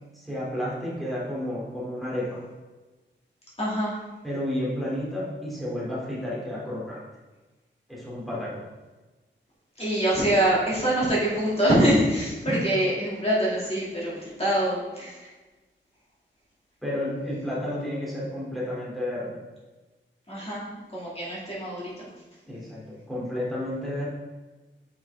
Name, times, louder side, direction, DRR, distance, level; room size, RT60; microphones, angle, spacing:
voice 1, 0.1-2.4 4.2-7.0 7.9-8.6 12.4-12.6 16.8-19.3 22.5-24.1, left 1 dB, ahead, -7 dB, 2.4 m, -31 dB
voice 2, 3.6-3.9 9.8-15.3 20.3-22.1, right 1 dB, 30° left, -8 dB, 2.2 m, -25 dB
7.2 x 5.7 x 3.4 m, 1.2 s
wide cardioid pair, 90°, 20 cm